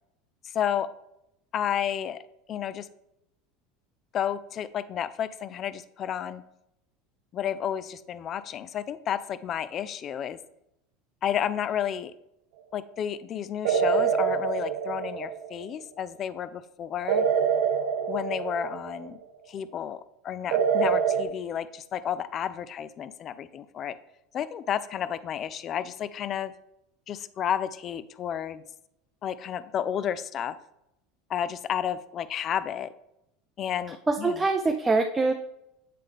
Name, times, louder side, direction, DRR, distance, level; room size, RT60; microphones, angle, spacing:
voice 1, 0.4-0.9 1.5-2.2 2.5-2.9 4.1-6.4 7.3-10.4 11.2-12.1 12.7-17.2 18.1-19.2 19.5-24.0 24.3-26.5 27.1-28.6 29.2-30.6 31.3-32.9 33.6-34.4, left 9 dB, 40° left, 15 dB, 0.4 m, -31 dB
sound 1, 13.6-15.7 17.1-19.1 20.5-21.2, right 7 dB, 70° right, 0.5 m, -26 dB
voice 2, 34.1-35.3, right 3 dB, 15° right, 4 dB, 0.5 m, -24 dB
8.3 x 3.7 x 3.5 m, 0.83 s
supercardioid pair, 100°, 0 cm